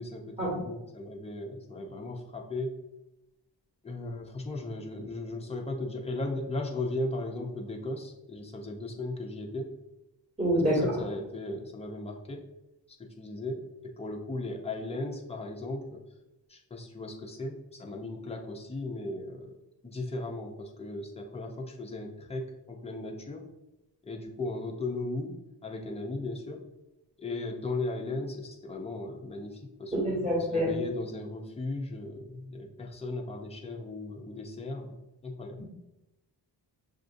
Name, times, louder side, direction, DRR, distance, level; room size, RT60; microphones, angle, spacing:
voice 1, 0.0-2.8 3.8-9.7 10.7-12.5 13.0-16.0 16.5-19.5 19.8-23.5 24.1-26.7 27.2-35.0 35.2-35.6, left 2 dB, 15° left, 1 dB, 0.4 m, -37 dB
voice 2, 10.4-10.9 29.9-30.7, equal, 15° right, -9 dB, 1.4 m, -26 dB
6.6 x 2.5 x 2.5 m, 0.93 s
wide cardioid pair, 160°, 43 cm